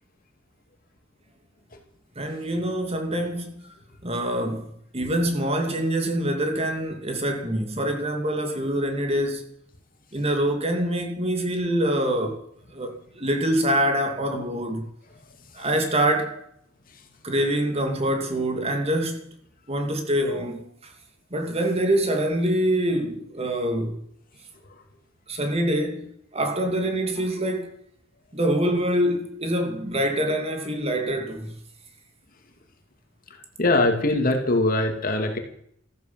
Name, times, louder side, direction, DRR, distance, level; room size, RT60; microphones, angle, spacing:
voice 1, 2.2-3.5 4.0-9.5 10.1-12.4 12.7-14.8 15.5-16.4 17.2-19.3 19.7-20.9 21.3-24.0 25.3-27.8 28.3-31.5, right 1 dB, 30° right, 2.6 m, -25 dB
voice 2, 33.6-35.4, left 2 dB, 45° left, 2.6 m, -22 dB
14.5 x 11.5 x 7.6 m
head